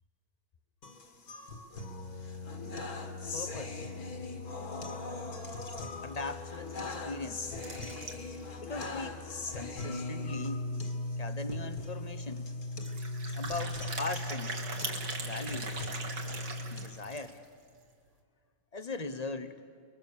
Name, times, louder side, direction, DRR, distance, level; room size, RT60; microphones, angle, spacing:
sound 1, 0.8-16.8, left 2 dB, 60° left, 2.2 m, -39 dB
voice 1, 3.3-3.9 6.0-7.5 8.2-9.2 9.5-10.6 11.2-12.5 13.3-14.6 15.2-15.8 16.7-17.4 18.7-19.6, left 3 dB, 35° left, 10 dB, 0.6 m, -40 dB
sound 2, 7.6-8.5 9.0-9.1 9.3-9.4 9.8-9.9 11.1-11.2 11.5-11.7 12.8-17.4, right 3 dB, 65° right, 2.4 m, -41 dB
30.0 x 22.0 x 6.8 m, 2.4 s
omnidirectional pair, 1.8 m